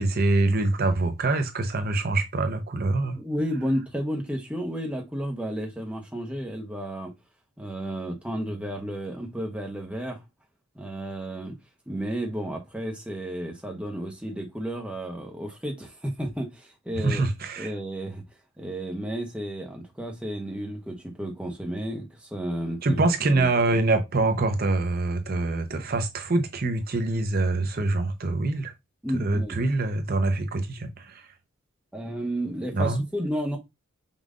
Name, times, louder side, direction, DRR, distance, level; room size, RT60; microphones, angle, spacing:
voice 1, 0.0-3.2 17.0-17.7 22.8-28.7 29.2-31.3 32.7-33.0, right 2 dB, 45° right, 0.7 m, -25 dB
voice 2, 3.1-7.1 7.6-10.2 10.7-11.6 11.9-17.2 17.6-18.2 18.6-23.0 23.3-23.5 29.0-29.6 31.9-33.6, equal, 5° right, 0.9 m, -32 dB
5.4 x 2.4 x 3.7 m
head